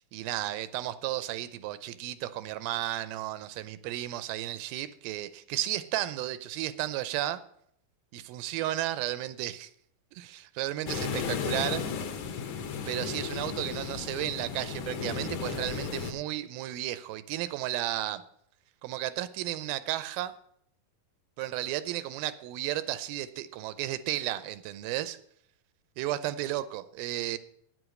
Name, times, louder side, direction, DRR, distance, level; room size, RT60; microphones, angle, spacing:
voice 1, 0.1-7.4 8.1-9.7 10.1-11.8 12.9-18.2 18.8-20.3 21.4-25.2 26.0-27.4, right 14 dB, 90° right, 14 dB, 2.5 m, -33 dB
sound 1, 10.9-16.1, left 6 dB, 65° left, 2.0 m, -34 dB
9.4 x 7.9 x 6.4 m, 0.68 s
omnidirectional pair, 4.2 m